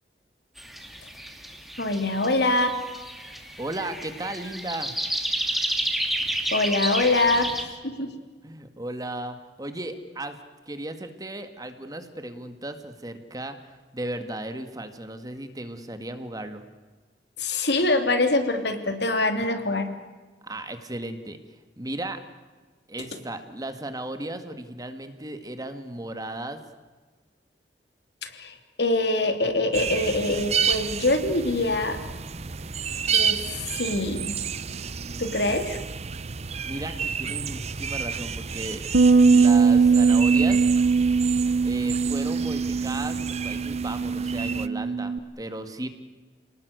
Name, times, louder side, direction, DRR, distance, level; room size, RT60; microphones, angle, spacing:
sound 1, 0.6-7.6, right 1 dB, ahead, 2.8 m, -31 dB
voice 1, 1.8-2.7 6.5-8.1 17.4-19.9 28.2-32.0 33.0-34.3 35.2-35.8, left 2 dB, 70° left, 7 dB, 3.0 m, -24 dB
voice 2, 3.2-4.9 8.4-10.4 10.7-13.6 13.9-16.6 20.4-21.4 21.8-22.2 22.9-26.6 36.7-38.8 39.3-40.6 41.6-45.9, right 1 dB, 20° right, 8 dB, 1.9 m, -35 dB
sound 2, 29.7-44.7, right 6 dB, 40° right, 0.8 m, -31 dB
Bass guitar, 38.9-45.2, right 4 dB, 65° right, 1.0 m, -21 dB
28.5 x 19.5 x 8.1 m, 1.3 s
head